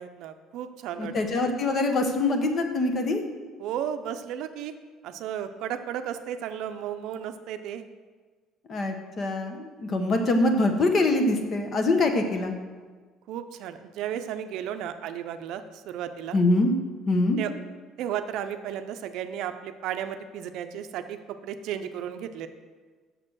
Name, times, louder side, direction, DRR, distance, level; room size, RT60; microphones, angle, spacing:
voice 1, 0.0-1.1 3.6-4.7 5.0-7.9 10.0-10.4 13.3-16.4 17.4-17.5 18.0-21.2 21.4-22.5, right 9 dB, 65° right, 8 dB, 0.5 m, -34 dB
voice 2, 1.0-3.2 8.7-12.5 16.3-16.7 17.1-17.4, left 2 dB, 35° left, 5 dB, 0.9 m, -24 dB
6.7 x 6.6 x 6.1 m, 1.4 s
cardioid pair, 155°, 0 cm